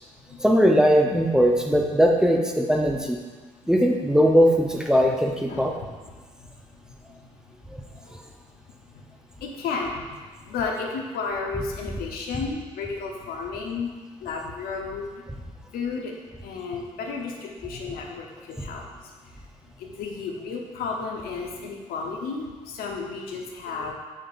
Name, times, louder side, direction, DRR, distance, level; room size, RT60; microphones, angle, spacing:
voice 1, 0.4-3.2 3.7-5.7 7.7-7.8, equal, 5° right, 1 dB, 0.9 m, -20 dB
voice 2, 9.4-10.0 10.5-13.9 14.2-15.1 15.7-16.1 16.4-18.8 19.8-23.9, left 4 dB, 65° left, 0 dB, 1.0 m, -32 dB
7.4 x 6.6 x 2.6 m, 1.3 s
hypercardioid pair, 45°, 17 cm